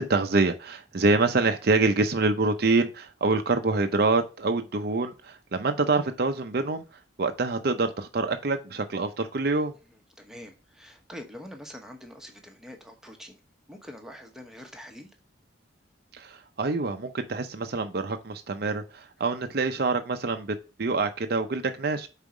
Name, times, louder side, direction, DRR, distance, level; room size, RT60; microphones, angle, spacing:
voice 1, 0.0-6.8 7.2-9.7 16.1-22.1, right 3 dB, 55° right, 0.6 m, -26 dB
voice 2, 10.2-13.4 13.7-15.1, equal, 5° right, 1.0 m, -44 dB
5.4 x 4.1 x 4.8 m
head